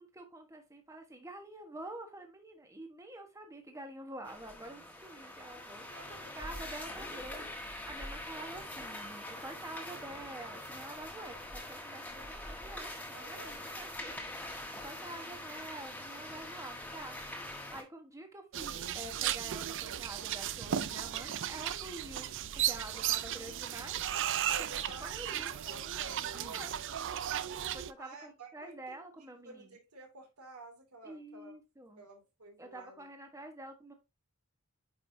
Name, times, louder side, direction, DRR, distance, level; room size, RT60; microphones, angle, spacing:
voice 1, 0.0-6.1 6.3-7.5 7.9-17.2 17.5-22.3 22.5-24.0 24.2-25.6 26.3-26.8 27.7-29.7 31.0-32.0 32.6-33.9, right 1 dB, 15° right, 5 dB, 1.1 m, -48 dB
sound 1, 4.2-17.8, left 1 dB, 5° left, 1.4 m, -44 dB
voice 2, 5.9-7.5 13.1-13.6 22.1-22.3 22.9-23.6 24.5-26.5 28.0-31.6 32.0-33.1, right 2 dB, 80° right, 3 dB, 2.6 m, -52 dB
sound 2, 18.5-27.9, right 10 dB, 55° right, 0.5 m, -35 dB
9.0 x 5.3 x 2.7 m, 0.24 s
head